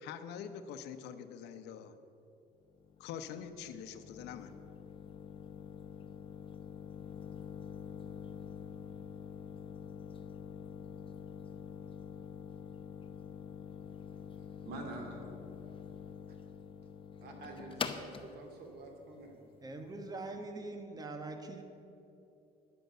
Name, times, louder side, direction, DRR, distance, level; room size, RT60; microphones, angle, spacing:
voice 1, 0.0-1.9 3.0-4.5, left 8 dB, 85° left, 10 dB, 0.8 m, -45 dB
sound 1, 2.7-20.3, left 6 dB, 30° left, 0.8 m, -46 dB
voice 2, 14.6-15.4 17.2-19.4, right 2 dB, 70° right, 2 dB, 2.5 m, -47 dB
voice 3, 19.6-21.6, right 2 dB, 20° right, 5 dB, 1.4 m, -43 dB
10.5 x 7.9 x 7.8 m, 2.8 s
cardioid pair, 110°, 17 cm